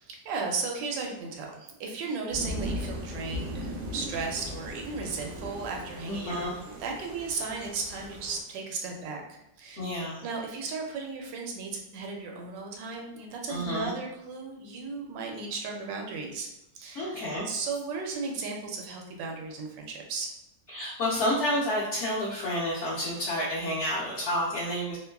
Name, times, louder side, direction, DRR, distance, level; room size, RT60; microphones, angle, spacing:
voice 1, 0.0-6.5 6.8-9.8 10.2-16.5 16.7-17.2 17.4-20.3, right 4 dB, 90° right, 1 dB, 1.3 m, -35 dB
sound 1, 2.3-8.4, equal, 75° right, 0.6 m, -38 dB
voice 2, 6.1-6.6 9.8-10.2 13.5-13.9 16.9-17.5 20.7-25.0, equal, 65° left, -7 dB, 0.7 m, -30 dB
3.1 x 2.2 x 2.2 m, 0.87 s
omnidirectional pair, 1.9 m